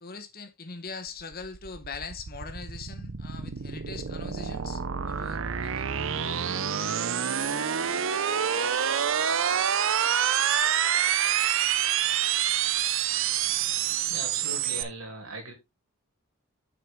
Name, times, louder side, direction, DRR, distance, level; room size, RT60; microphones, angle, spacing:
voice 1, 0.0-6.2, left 4 dB, 45° left, 1.3 m, -42 dB
sound 1, 1.1-14.8, right 9 dB, 60° right, 0.7 m, -27 dB
voice 2, 14.1-15.5, right 2 dB, 75° right, 3.2 m, -38 dB
7.6 x 6.0 x 3.7 m
head